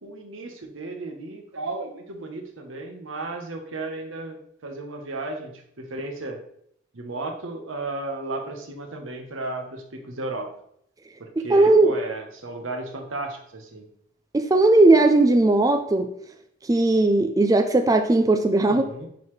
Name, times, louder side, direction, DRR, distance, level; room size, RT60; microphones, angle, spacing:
voice 1, 0.0-6.4 6.9-10.5 11.2-13.9 18.6-19.1, right 2 dB, 90° right, 3 dB, 1.1 m, -34 dB
voice 2, 11.4-11.9 14.3-16.1 16.7-18.9, right 2 dB, 20° right, 6 dB, 0.4 m, -18 dB
10.5 x 4.0 x 3.2 m, 0.71 s
head